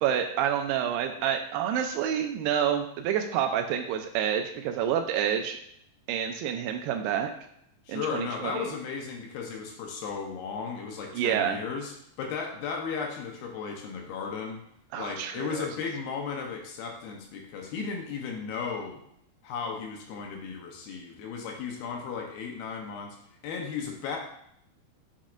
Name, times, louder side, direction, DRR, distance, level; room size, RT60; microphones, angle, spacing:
voice 1, 0.0-5.6 6.1-7.3 7.9-8.7 11.1-11.6 14.9-15.7, right 9 dB, 80° right, 5 dB, 2.4 m, -28 dB
voice 2, 7.9-14.6 15.0-19.0 19.4-23.2 23.4-24.2, left 5 dB, 75° left, 1 dB, 2.6 m, -35 dB
7.3 x 6.1 x 2.5 m, 0.72 s
omnidirectional pair, 4.8 m